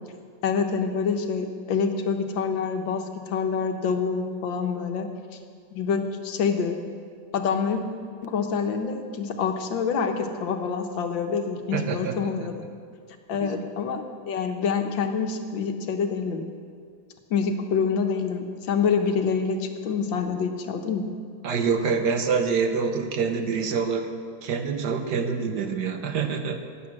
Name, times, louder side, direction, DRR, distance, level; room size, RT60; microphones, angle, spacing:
voice 1, 0.4-5.1 5.7-6.8 7.3-7.8 8.2-12.6 13.3-16.5 17.3-21.1, left 5 dB, 75° left, 5 dB, 1.7 m, -26 dB
voice 2, 11.7-12.3 13.4-13.6 21.4-24.1 24.4-26.6, right 5 dB, 60° right, 6 dB, 1.4 m, -26 dB
12.0 x 9.6 x 7.5 m, 2.2 s
omnidirectional pair, 2.1 m